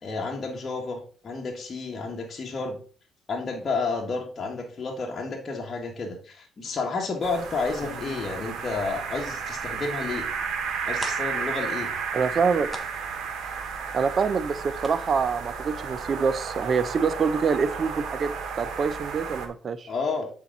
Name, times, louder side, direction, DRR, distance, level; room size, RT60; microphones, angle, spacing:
voice 1, 0.0-2.8 3.3-10.3 10.9-11.9 19.9-20.3, left 4 dB, 40° left, 0 dB, 1.5 m, -31 dB
sound 1, 7.2-19.5, right 6 dB, 70° right, 1.3 m, -33 dB
Piano, 7.8-10.0, left 5 dB, 15° left, 3.4 m, -49 dB
sound 2, 10.9-16.5 16.8-16.9 17.3-17.5 17.8-17.9, right 1 dB, 10° right, 1.3 m, -43 dB
voice 2, 12.1-12.8 13.9-19.9, right 5 dB, 45° right, 13 dB, 0.6 m, -26 dB
8.1 x 4.6 x 3.9 m, 0.40 s
cardioid pair, 90°, 0 cm